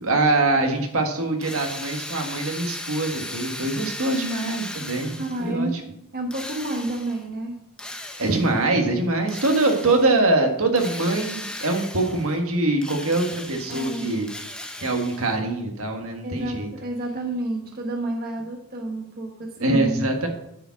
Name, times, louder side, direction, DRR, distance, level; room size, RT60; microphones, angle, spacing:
voice 1, 0.0-5.7 8.2-14.3 14.8-16.7 19.6-20.3, right 2 dB, 70° right, 3 dB, 1.6 m, -23 dB
Drill, 1.4-5.6 6.3-7.3 7.8-8.6 9.3-10.2 10.8-12.4 12.8-15.4, left 1 dB, 5° left, 0.8 m, -37 dB
voice 2, 5.0-5.9 6.1-7.6 13.7-14.3 16.2-20.1, right 1 dB, 45° right, 2 dB, 1.3 m, -30 dB
9.8 x 5.0 x 7.2 m, 0.76 s
head